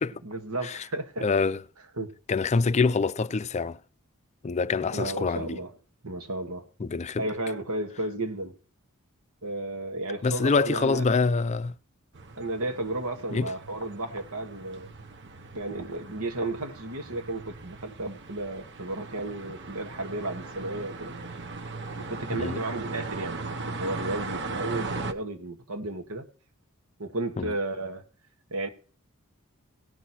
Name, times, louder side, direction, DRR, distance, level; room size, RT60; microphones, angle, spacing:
voice 1, 0.0-1.3 2.0-2.1 4.9-5.8 6.0-6.7 7.2-8.5 9.4-11.0 12.4-14.9 15.5-21.2 22.0-23.4 23.7-26.3 27.0-28.0 28.5-28.7, right 2 dB, 85° right, 1.8 m, -33 dB
voice 2, 1.2-1.6 2.3-3.8 4.4-5.6 6.8-7.2 10.2-11.7 13.3-13.5 22.4-22.6 27.4-27.5, left 4 dB, 30° left, 0.4 m, -25 dB
sound 1, 12.1-25.1, right 3 dB, 55° right, 1.0 m, -38 dB
18.0 x 6.4 x 4.2 m
head